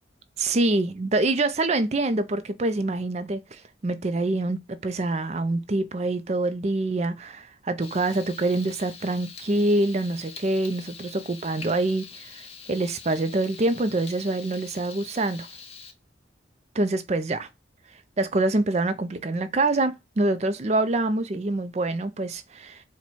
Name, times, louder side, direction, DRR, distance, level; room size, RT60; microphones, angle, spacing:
voice 1, 0.4-12.4 12.7-15.5 16.8-17.5 18.2-22.8, right 2 dB, 35° right, 0.4 m, -25 dB
Frying (food), 7.8-15.9, left 5 dB, 30° left, 0.6 m, -44 dB
4.5 x 2.2 x 4.1 m
head